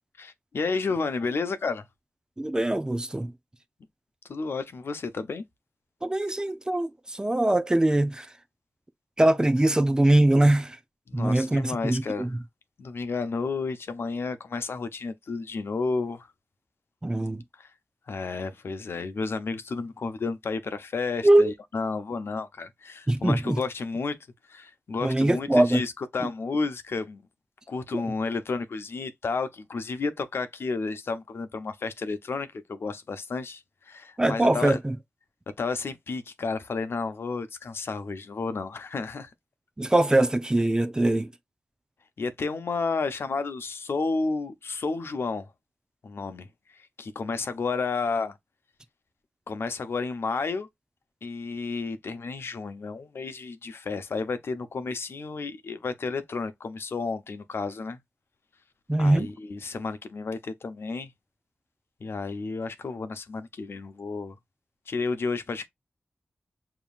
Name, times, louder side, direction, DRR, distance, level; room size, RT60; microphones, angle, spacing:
voice 1, 0.2-1.9 4.3-5.4 11.1-12.3 12.8-16.3 17.5-17.7 18.1-24.2 24.5-27.2 27.7-34.8 35.6-39.3 42.2-45.5 46.0-48.4 49.5-50.7 51.2-58.0 59.0-61.1 62.0-64.4 64.9-65.7, left 4 dB, 75° left, 0.8 m, -31 dB
voice 2, 2.4-3.3 6.0-8.3 9.2-10.8 11.1-12.4 17.0-17.4 21.2-21.5 23.1-23.6 25.0-25.8 27.9-28.0 34.2-35.0 39.8-41.3 58.9-59.3, right 1 dB, 20° right, 0.6 m, -22 dB
7.0 x 3.0 x 2.4 m
wide cardioid pair, 85°, 4 cm